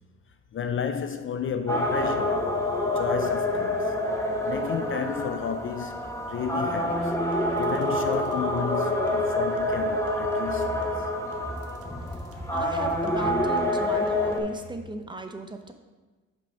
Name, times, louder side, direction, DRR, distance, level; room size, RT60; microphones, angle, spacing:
voice 1, 0.5-2.5 2.9-4.0 4.4-7.2 7.6-11.1, left 7 dB, 45° left, 0.5 m, -32 dB
sound 1, 1.7-14.4, left 1 dB, 10° left, 1.0 m, -27 dB
sound 2, 6.8-14.8, equal, 50° right, 1.0 m, -47 dB
voice 2, 12.5-15.7, right 2 dB, 15° right, 0.7 m, -36 dB
5.4 x 5.1 x 5.4 m
cardioid pair, 90°, 30 cm